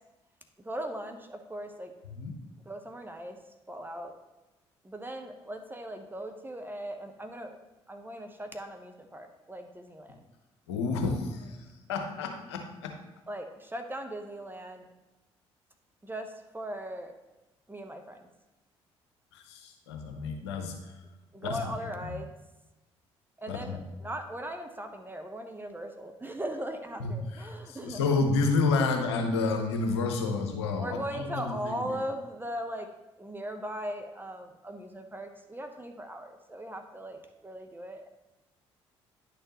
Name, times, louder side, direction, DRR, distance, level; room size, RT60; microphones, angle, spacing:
voice 1, 0.6-1.9 2.7-3.4 3.7-4.1 4.8-7.6 7.9-10.1 13.3-14.8 16.0-17.1 17.7-18.2 21.3-22.3 23.4-28.2 30.8-32.9 33.2-38.1, right 1 dB, 15° right, 5 dB, 1.0 m, -39 dB
voice 2, 10.7-12.9 19.3-20.9 21.4-22.2 23.5-23.8 27.0-32.0, left 3 dB, 80° left, 4 dB, 0.9 m, -30 dB
9.9 x 6.6 x 3.0 m, 1.1 s
hypercardioid pair, 50°, 14 cm